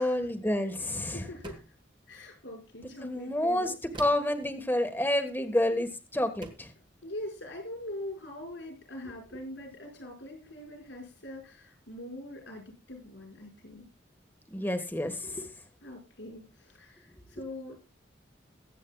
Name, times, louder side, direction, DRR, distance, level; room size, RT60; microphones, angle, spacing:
voice 1, 0.0-1.3 3.0-3.7 4.0-6.7 14.5-15.5, left 1 dB, 10° left, 6 dB, 1.4 m, -29 dB
voice 2, 1.1-1.6 2.1-3.7 7.0-13.9 15.8-17.8, left 1 dB, 80° left, 1 dB, 5.8 m, -43 dB
sound 1, 1.4-1.9 3.9-4.4 5.7-5.9 6.4-6.8, right 2 dB, 25° right, 1.4 m, -45 dB
22.5 x 8.5 x 2.3 m, 0.28 s
head